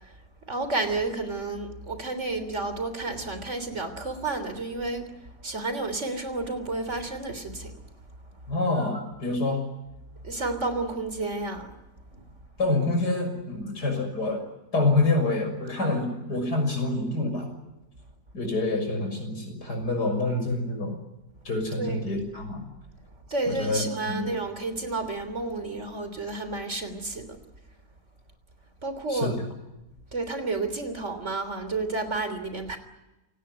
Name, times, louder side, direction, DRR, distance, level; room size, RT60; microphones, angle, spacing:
voice 1, 0.5-5.1 5.4-7.7 10.2-11.7 12.1-12.2 21.8-22.1 23.3-27.3 28.8-29.3 30.1-32.8, right 3 dB, 45° right, 10 dB, 3.6 m, -31 dB
voice 2, 8.5-9.6 12.6-14.4 14.7-17.5 18.3-21.0 21.4-22.7 23.5-24.3 29.1-29.3, left 2 dB, 90° left, 5 dB, 6.9 m, -27 dB
27.5 x 19.0 x 9.4 m, 1.0 s
omnidirectional pair, 1.7 m